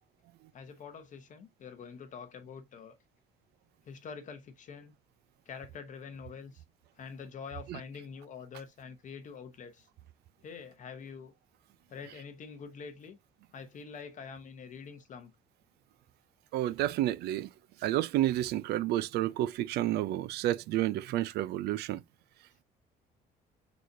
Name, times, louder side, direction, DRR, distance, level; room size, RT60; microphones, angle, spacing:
voice 1, 0.5-3.0 3.8-4.9 5.5-6.6 7.0-9.9 10.4-11.3 11.9-13.2 13.5-15.3, left 6 dB, 50° left, 0.9 m, -45 dB
voice 2, 16.5-17.5 17.8-22.0, right 14 dB, 75° right, 0.4 m, -30 dB
4.7 x 4.1 x 2.6 m
cardioid pair, 110°, 17 cm